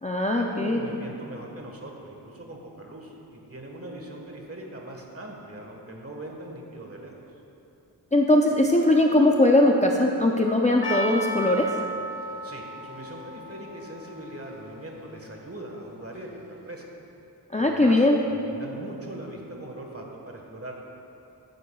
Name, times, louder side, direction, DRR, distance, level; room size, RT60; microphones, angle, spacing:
voice 1, 0.0-0.8 8.1-11.7 17.5-18.2, left 1 dB, 15° left, 0 dB, 0.5 m, -20 dB
voice 2, 0.5-7.1 12.4-16.9 17.6-18.0 18.3-20.8, right 1 dB, 35° right, 0 dB, 1.4 m, -41 dB
Percussion, 10.8-15.8, equal, 70° left, 0.9 m, -35 dB
14.0 x 9.5 x 2.3 m, 2.9 s
wide cardioid pair, 75°, 42 cm